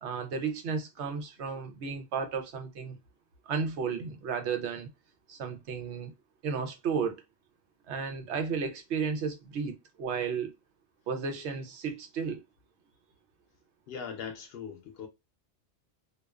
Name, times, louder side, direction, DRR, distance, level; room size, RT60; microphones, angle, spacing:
voice 1, 0.0-3.0 3.5-4.9 5.3-6.1 6.4-7.2 7.9-10.5 11.1-12.4, right 5 dB, 90° right, 0.9 m, -33 dB
voice 2, 13.9-15.1, left 6 dB, 65° left, 0.8 m, -40 dB
2.4 x 2.3 x 2.2 m
omnidirectional pair, 1.1 m